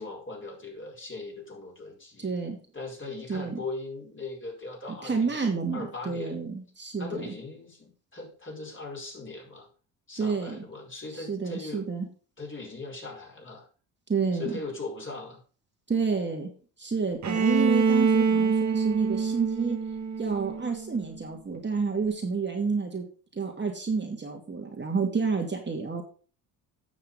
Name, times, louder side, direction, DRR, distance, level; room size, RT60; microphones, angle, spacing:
voice 1, 0.0-2.3 2.7-5.4 5.7-6.4 7.0-9.7 10.1-11.9 12.4-13.7 14.3-15.4, left 3 dB, 30° left, -1 dB, 5.1 m, -39 dB
voice 2, 2.2-2.6 3.3-3.6 5.0-7.3 10.2-10.6 11.1-12.1 14.1-14.5 15.9-16.5 16.8-19.8 20.2-23.1 23.3-26.0, right 5 dB, 25° right, 2 dB, 2.5 m, -29 dB
Bowed string instrument, 17.2-21.1, right 5 dB, 40° right, 1.8 m, -25 dB
9.5 x 6.6 x 5.2 m, 0.40 s
hypercardioid pair, 60°, 42 cm